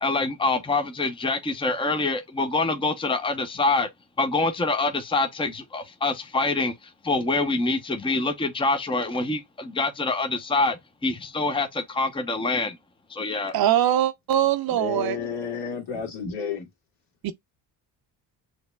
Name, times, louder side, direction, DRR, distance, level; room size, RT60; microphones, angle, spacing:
voice 1, 0.0-3.9 4.2-6.7 7.0-12.8 13.1-13.6, left 3 dB, 10° left, 0.8 m, -25 dB
voice 2, 13.5-15.2 17.2-17.3, right 11 dB, 55° right, 0.7 m, -22 dB
voice 3, 14.7-16.7, left 6 dB, 65° left, 2.1 m, -31 dB
6.4 x 3.0 x 2.2 m
supercardioid pair, 60°, 45 cm